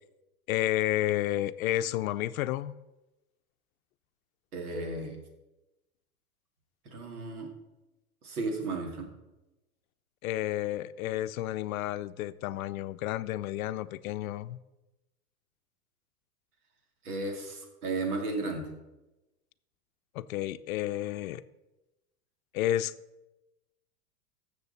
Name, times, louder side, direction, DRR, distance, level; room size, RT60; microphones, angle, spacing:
voice 1, 0.5-2.7 10.2-14.6 20.1-21.4 22.5-22.9, left 14 dB, 70° left, 0.6 m, -31 dB
voice 2, 4.5-5.2 6.9-7.5 8.2-9.1 17.0-18.7, right 2 dB, 80° right, 2.5 m, -34 dB
14.5 x 7.0 x 4.1 m
hypercardioid pair, 110°, 44 cm